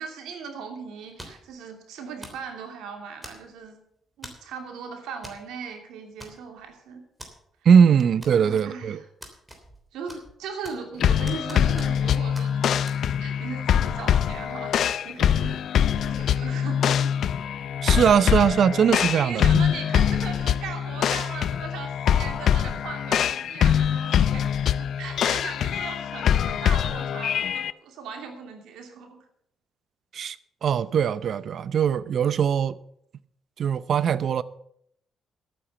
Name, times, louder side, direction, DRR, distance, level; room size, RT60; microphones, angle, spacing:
voice 1, 0.0-3.8 4.2-7.0 8.3-9.0 9.9-12.8 13.2-15.6 16.0-17.2 19.1-29.2, right 6 dB, 90° right, 2.8 m, -39 dB
sound 1, 1.2-1.5 2.2-2.5 3.2-3.7 4.2-4.5 5.2-5.4 5.7-5.8 6.2-6.7 7.2-7.3 8.2-8.7 9.2-9.8 10.1-10.9 11.3-12.1 12.3-12.5 12.9-13.0, right 1 dB, 10° right, 3.3 m, -44 dB
voice 2, 7.6-9.0 17.8-19.6 30.1-30.4 30.6-32.8 33.6-34.4, right 7 dB, 60° right, 0.7 m, -20 dB
sound 2, 11.0-27.7, left 9 dB, 65° left, 0.5 m, -24 dB
12.0 x 9.0 x 6.8 m
cardioid pair, 90°, 0 cm